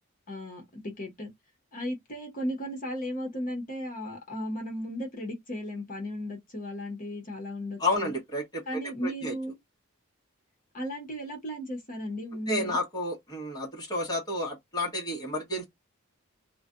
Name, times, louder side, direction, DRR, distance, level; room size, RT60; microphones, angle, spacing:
voice 1, 0.3-1.3 1.7-8.1 8.7-9.6 10.7-12.8, equal, 40° left, 1.1 m, -35 dB
voice 2, 7.8-9.3 12.5-15.6, left 1 dB, 20° left, 1.1 m, -31 dB
2.4 x 2.2 x 3.6 m
head